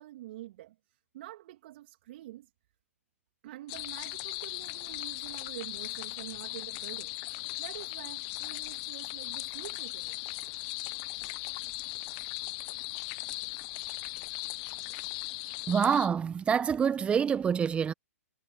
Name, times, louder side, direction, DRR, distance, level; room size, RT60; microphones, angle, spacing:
voice 1, 0.0-2.5 3.4-7.2 7.6-10.2, right 15 dB, 45° right, 2.8 m, -46 dB
sound 1, 3.7-16.1, left 33 dB, 35° left, 0.6 m, -38 dB
voice 2, 15.7-17.9, right 7 dB, 15° right, 1.2 m, -26 dB
figure-of-eight pair, 120°, 8 cm